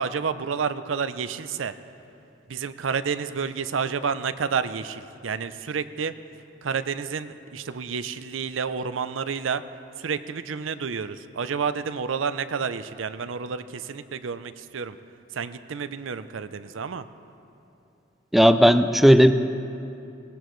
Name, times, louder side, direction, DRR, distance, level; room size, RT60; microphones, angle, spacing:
voice 1, 0.0-1.7 2.5-6.1 6.6-9.6 10.0-15.0 15.3-17.0, right 6 dB, 85° right, 12 dB, 0.5 m, -30 dB
voice 2, 18.3-19.3, equal, ahead, 9 dB, 0.4 m, -15 dB
18.5 x 18.0 x 3.1 m, 2.7 s
head